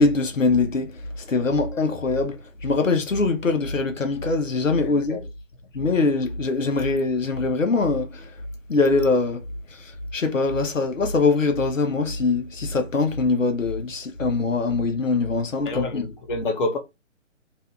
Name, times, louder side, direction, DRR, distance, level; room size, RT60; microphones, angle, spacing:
voice 1, 0.0-5.2 5.7-8.3 8.7-9.4 9.7-16.1, left 3 dB, 85° left, 0.9 m, -23 dB
voice 2, 4.8-5.3 15.6-16.8, left 2 dB, 40° left, 0.8 m, -28 dB
2.8 x 2.2 x 3.1 m
figure-of-eight pair, 135°, 37 cm